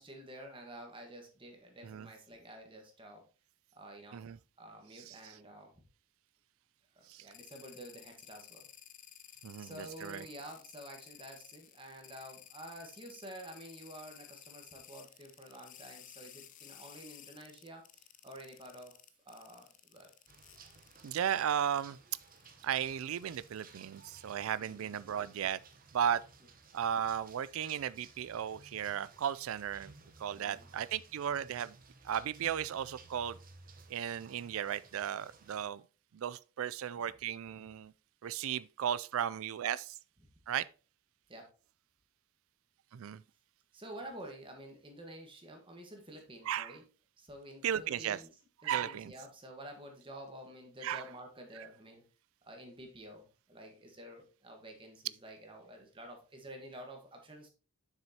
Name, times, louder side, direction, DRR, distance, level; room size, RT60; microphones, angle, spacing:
voice 1, 0.0-3.3 3.7-5.7 6.9-8.7 9.6-18.9 19.2-20.1 24.6-24.9 30.3-30.7 41.3-41.5 43.7-46.8 47.2-48.3 48.6-52.0 52.4-57.5, right 1 dB, 25° right, 1.3 m, -50 dB
sound 1, 7.3-21.8 22.1-22.5 23.1-24.6, left 11 dB, 35° left, 0.5 m, -55 dB
voice 2, 9.4-10.3 21.0-22.0 22.6-25.6 25.9-26.2 26.7-29.9 30.2-31.8 32.0-33.4 33.9-35.8 36.1-37.9 38.2-40.0 40.5-40.6 42.9-43.2 46.5-46.8 47.6-48.2 48.6-49.1 50.8-51.0, right 9 dB, 70° right, 0.3 m, -35 dB
sound 2, 20.3-35.7, right 4 dB, 40° right, 0.9 m, -58 dB
7.5 x 6.1 x 2.8 m
head